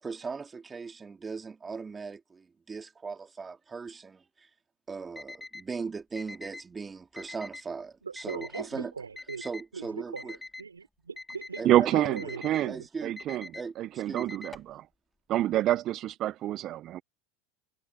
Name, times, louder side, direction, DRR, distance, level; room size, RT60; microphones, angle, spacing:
voice 1, 0.0-4.5 4.9-8.9 9.4-10.4 11.6-12.4 12.7-13.2 13.5-14.3, right 5 dB, 20° right, 2.6 m, -39 dB
Alarm, 5.2-5.6 6.2-6.6 7.2-7.6 8.2-8.6 9.2-9.6 10.2-10.6 11.2-11.6 12.2-12.6 13.2-13.6 14.2-14.7, left 3 dB, 10° left, 1.9 m, -43 dB
voice 2, 8.0-9.5 9.7-12.8, right 5 dB, 90° right, 3.7 m, -40 dB
voice 3, 11.6-12.7 13.0-13.5 13.8-14.8 15.3-17.0, right 13 dB, 45° right, 0.7 m, -27 dB
hypercardioid pair, 85°, 0 cm